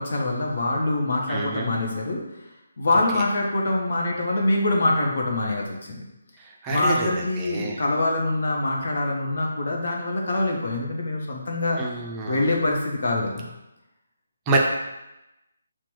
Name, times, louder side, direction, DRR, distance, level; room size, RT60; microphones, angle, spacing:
voice 1, 0.0-2.2 2.8-6.0 6.7-11.8 12.2-13.5, left 2 dB, 65° left, 0 dB, 0.9 m, -24 dB
voice 2, 1.3-1.7 3.1-3.2 6.4-7.8 11.8-12.6 14.5-14.6, right 3 dB, 20° right, -2 dB, 0.5 m, -28 dB
5.8 x 2.2 x 3.0 m, 0.95 s
figure-of-eight pair, 150°, 0 cm